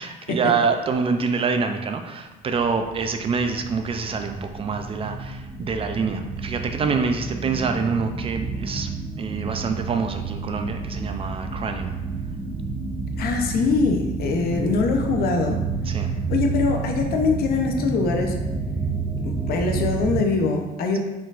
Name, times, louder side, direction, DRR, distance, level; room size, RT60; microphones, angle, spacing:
voice 1, 0.0-12.0 15.9-16.1, right 5 dB, 35° right, 6 dB, 0.4 m, -26 dB
sound 1, 2.6-20.2, right 4 dB, 15° right, 1.0 m, -30 dB
voice 2, 13.2-15.6 16.3-18.4 19.2-21.0, left 4 dB, 65° left, 3 dB, 0.7 m, -23 dB
4.2 x 3.9 x 2.4 m, 1.1 s
cardioid pair, 110°, 17 cm